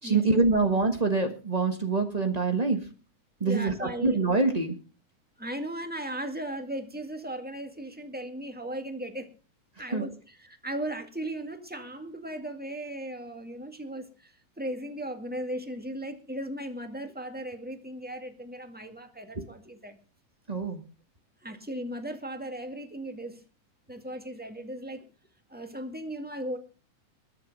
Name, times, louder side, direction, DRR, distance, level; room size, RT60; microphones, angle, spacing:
voice 1, 0.0-2.8 3.4-4.7 9.9-10.0 20.5-20.8, right 3 dB, 90° right, 5 dB, 0.3 m, -25 dB
voice 2, 3.4-4.2 5.4-9.3 9.8-20.0 21.4-23.4 23.9-25.0 25.5-26.6, right 1 dB, 5° right, 6 dB, 1.2 m, -37 dB
21.5 x 7.3 x 5.4 m, 0.35 s
omnidirectional pair, 3.4 m